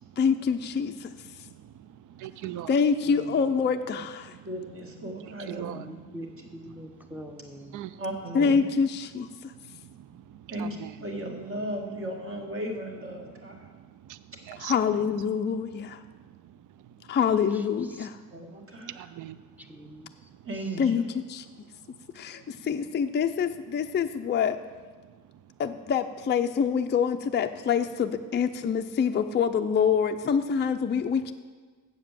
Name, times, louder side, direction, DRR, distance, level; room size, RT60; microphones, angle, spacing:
voice 1, 0.2-1.1 2.7-4.4 8.3-9.5 14.6-16.0 17.1-18.2 20.8-21.0 21.3-21.5 22.1-24.6 25.6-31.3, left 6 dB, 30° left, 6 dB, 0.4 m, -26 dB
voice 2, 1.0-2.7 4.2-4.7 5.0-6.1 6.7-7.2 7.6-8.0 9.4-11.0 13.1-15.0 15.8-17.1 18.5-20.5 21.5-22.6 25.0-25.5 31.0-31.1, right 12 dB, 60° right, 14 dB, 0.4 m, -45 dB
voice 3, 3.1-3.5 5.7-7.8 11.0-11.8 17.5-18.1 19.6-20.3 20.6-20.7, equal, 5° right, 6 dB, 0.7 m, -45 dB
voice 4, 4.4-5.8 8.0-8.6 10.5-10.8 11.0-13.7 18.3-18.9 20.4-20.9, right 1 dB, 40° right, 1 dB, 1.8 m, -35 dB
7.8 x 7.3 x 7.4 m, 1.5 s
cardioid pair, 125°, 35 cm